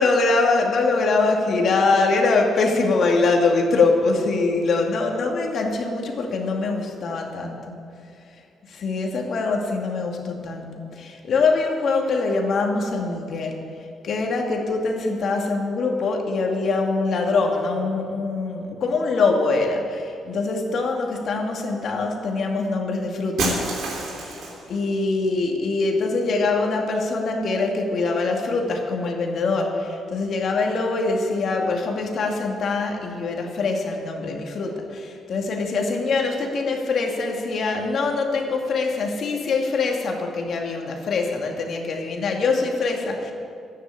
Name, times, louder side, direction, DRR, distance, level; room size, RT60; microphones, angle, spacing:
voice 1, 0.0-7.7 8.7-13.6 14.0-23.6 24.3-24.4 24.7-43.3, left 3 dB, 60° left, 1 dB, 2.3 m, -23 dB
Shatter, 23.4-24.7, right 2 dB, 75° right, 3.2 m, -27 dB
12.0 x 9.7 x 8.5 m, 2.5 s
cardioid pair, 90°, 0 cm